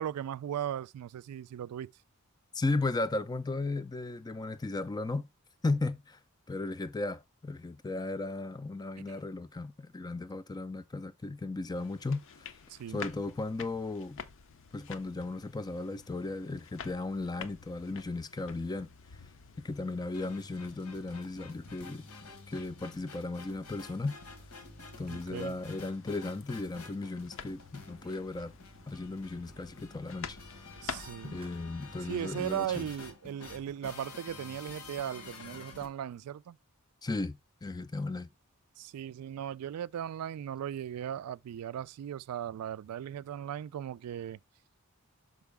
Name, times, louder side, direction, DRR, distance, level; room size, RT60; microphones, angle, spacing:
voice 1, 0.0-1.9 12.7-13.0 25.1-25.6 30.8-31.4 32.1-36.6 38.8-44.4, right 10 dB, 80° right, 0.3 m, -37 dB
voice 2, 2.5-5.3 5.6-6.2 6.5-12.5 12.9-14.2 14.7-18.9 19.6-22.0 22.5-24.1 25.0-28.5 28.9-30.7 31.2-32.9 37.0-38.3, left 2 dB, 20° left, 0.4 m, -35 dB
sound 1, 11.8-31.6, left 6 dB, 60° left, 0.6 m, -50 dB
sound 2, 20.1-35.9, left 3 dB, 85° left, 1.4 m, -49 dB
Clapping, 30.9-31.6, right 4 dB, 25° right, 0.8 m, -56 dB
6.2 x 4.7 x 3.4 m
head